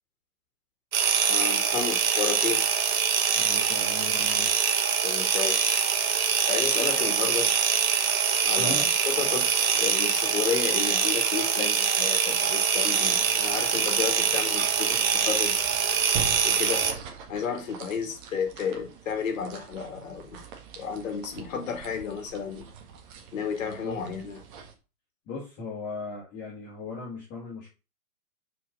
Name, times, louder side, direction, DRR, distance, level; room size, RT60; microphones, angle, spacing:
sound 1, 0.9-16.9, right 7 dB, 60° right, 1.6 m, -24 dB
voice 1, 1.3-2.6 5.0-5.9 6.5-7.6 8.4-15.5 16.4-16.9 17.3-20.4 20.8-22.7 23.3-24.4, left 6 dB, 55° left, 2.1 m, -32 dB
voice 2, 3.3-4.5 8.6-8.8 23.7-24.0 25.3-27.7, left 3 dB, 25° left, 2.5 m, -37 dB
sound 2, 13.0-24.7, right 7 dB, 30° right, 1.7 m, -43 dB
5.8 x 5.0 x 5.4 m
hypercardioid pair, 130°, 46 cm